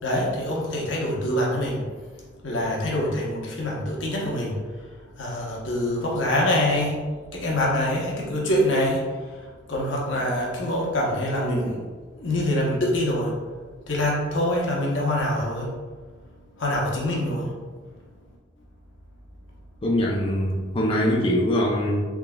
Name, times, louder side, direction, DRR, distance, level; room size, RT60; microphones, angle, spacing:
voice 1, 0.0-1.8 2.4-4.5 5.2-6.9 7.3-9.0 9.7-11.7 12.2-13.3 13.9-15.6 16.6-17.5, left 1 dB, 90° left, -3 dB, 0.9 m, -25 dB
voice 2, 19.8-22.1, equal, 30° left, -3 dB, 0.5 m, -23 dB
3.7 x 3.6 x 2.3 m, 1.4 s
head